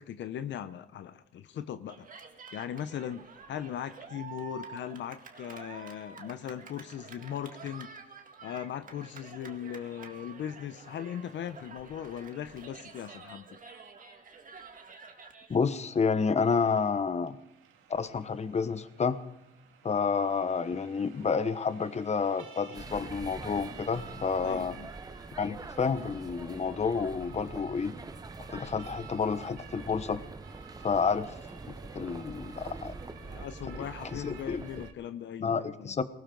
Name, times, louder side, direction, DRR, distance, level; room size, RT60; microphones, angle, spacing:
voice 1, 0.0-2.1 2.5-3.2 3.5-8.0 8.4-13.6 24.4-24.9 33.2-35.9, left 9 dB, 70° left, 11 dB, 0.8 m, -39 dB
Cheering, 1.9-15.5, right 4 dB, 45° right, 2.1 m, -49 dB
voice 2, 15.5-17.4 17.9-19.2 19.8-24.8 25.4-27.9 28.5-30.2 30.8-31.3 31.9-32.9 33.8-33.9 34.1-34.6 35.4-36.0, left 5 dB, 35° left, 12 dB, 1.1 m, -29 dB
Siren, 17.2-34.9, right 8 dB, 85° right, 2.2 m, -53 dB
sound 1, 22.7-34.9, right 3 dB, 20° right, 0.9 m, -44 dB
20.0 x 18.5 x 3.9 m, 0.84 s
cardioid pair, 90°, 20 cm